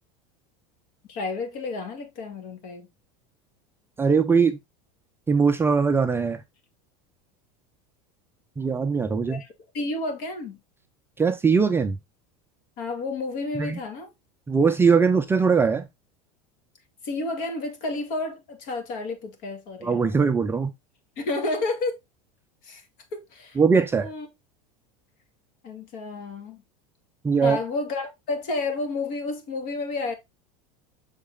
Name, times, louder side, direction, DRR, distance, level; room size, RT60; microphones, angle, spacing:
voice 1, 1.1-2.9 9.3-9.5 9.7-10.6 12.8-14.1 17.0-20.2 21.2-22.0 22.6-22.8 23.1-23.6 24.0-24.3 25.6-26.6 27.4-30.1, left 3 dB, 55° left, 2.2 m, -31 dB
voice 2, 4.0-4.6 5.3-6.4 8.6-9.4 11.2-12.0 13.6-13.8 14.5-15.9 19.8-20.7 23.6-24.1 27.2-27.6, right 5 dB, 15° right, 0.5 m, -21 dB
6.6 x 4.1 x 3.7 m
supercardioid pair, 135°, 18 cm